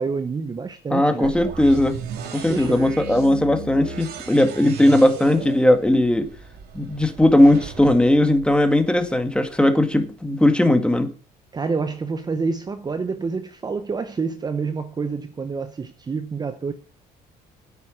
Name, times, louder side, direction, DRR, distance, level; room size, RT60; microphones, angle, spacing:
voice 1, 0.0-1.3 2.5-2.8 11.5-16.7, right 4 dB, 25° right, 0.8 m, -27 dB
voice 2, 0.9-2.0 2.3-6.3 6.7-11.1, left 1 dB, 5° left, 1.8 m, -18 dB
sound 1, 1.2-9.1, right 5 dB, 70° right, 2.7 m, -36 dB
9.7 x 8.3 x 6.2 m
cardioid pair, 110°, 17 cm